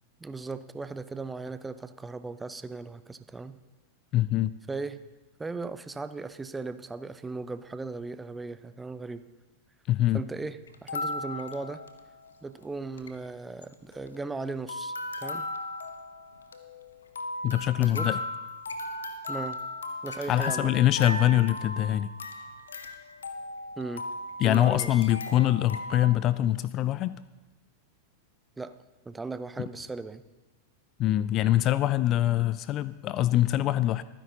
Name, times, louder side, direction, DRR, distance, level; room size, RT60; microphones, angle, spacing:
voice 1, 0.2-3.6 4.7-5.0 5.4-9.2 10.1-11.8 12.4-15.0 15.2-15.5 17.8-18.1 19.3-19.6 20.0-20.7 23.8-24.0 24.4-25.1 28.6-28.7 29.1-30.2, right 3 dB, 10° right, 12 dB, 0.6 m, -37 dB
voice 2, 4.1-4.5 9.9-10.2 17.4-18.2 20.3-22.1 24.4-27.2 31.0-34.0, left 13 dB, 35° left, 17 dB, 0.4 m, -24 dB
sound 1, 10.7-12.4 12.6-12.7 12.9-13.2 13.6-14.4 14.7-26.1, left 2 dB, 70° left, 0.9 m, -37 dB
23.0 x 9.9 x 2.8 m, 1.1 s
figure-of-eight pair, 90°, 0 cm